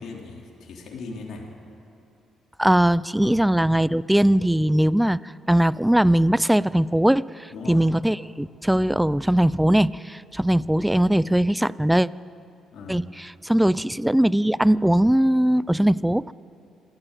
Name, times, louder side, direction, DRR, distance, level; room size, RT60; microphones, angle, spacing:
voice 1, 0.0-1.5 3.2-3.5 7.5-7.8 12.7-13.0, left 4 dB, 65° left, -1 dB, 3.4 m, -38 dB
voice 2, 2.6-12.1 12.9-16.3, right 1 dB, 5° right, 20 dB, 0.4 m, -20 dB
24.5 x 13.5 x 9.1 m, 2.7 s
cardioid pair, 90°, 0 cm